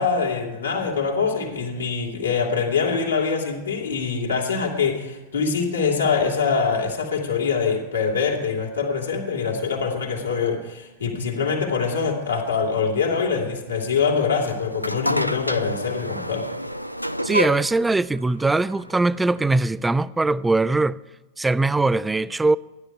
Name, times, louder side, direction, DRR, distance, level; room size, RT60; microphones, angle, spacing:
voice 1, 0.0-16.5, left 5 dB, 75° left, 2.5 m, -24 dB
sound 1, 14.3-19.6, equal, 90° left, 0.4 m, -29 dB
voice 2, 17.2-21.0 21.4-22.6, right 3 dB, 10° right, 0.3 m, -21 dB
15.5 x 11.5 x 4.6 m
figure-of-eight pair, 90°, 0 cm